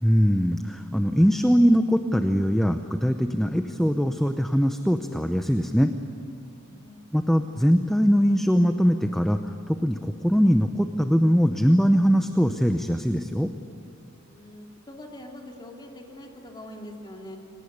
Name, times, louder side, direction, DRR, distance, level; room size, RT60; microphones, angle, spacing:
voice 1, 0.0-5.9 7.1-9.4 9.7-13.5, equal, ahead, 7 dB, 0.8 m, -21 dB
voice 2, 6.6-7.0 14.3-17.4, left 1 dB, 20° left, 1 dB, 2.7 m, -43 dB
27.0 x 18.5 x 9.6 m, 2.5 s
head